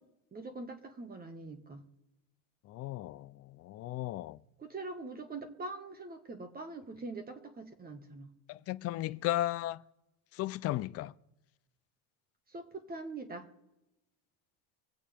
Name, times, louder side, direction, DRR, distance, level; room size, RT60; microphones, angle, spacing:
voice 1, 0.3-1.8 4.6-8.3 12.5-13.5, right 3 dB, 20° right, 1.6 m, -43 dB
voice 2, 2.6-4.4 8.5-9.8 10.3-11.1, left 15 dB, 35° left, 0.4 m, -35 dB
25.0 x 8.4 x 3.5 m
supercardioid pair, 135°, 47 cm